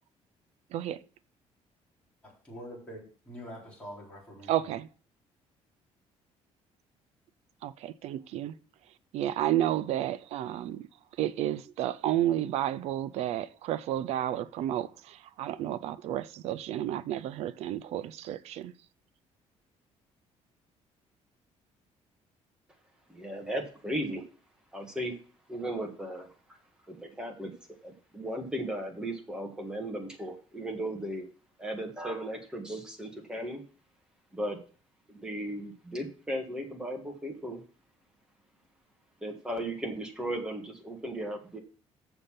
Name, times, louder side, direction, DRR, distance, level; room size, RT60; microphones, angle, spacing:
voice 1, 0.7-1.0 4.5-4.9 7.6-8.6 9.1-10.9 11.2-18.7, right 12 dB, 70° right, 0.5 m, -31 dB
voice 2, 2.2-4.7, equal, 10° left, 4.1 m, -45 dB
voice 3, 23.1-24.2 24.7-25.1 25.5-26.3 26.9-27.5 27.8-31.2 31.6-33.6 34.3-34.6 35.1-37.6 39.2-41.6, right 1 dB, 5° right, 1.7 m, -36 dB
7.1 x 6.6 x 5.8 m
cardioid pair, 175°, 11 cm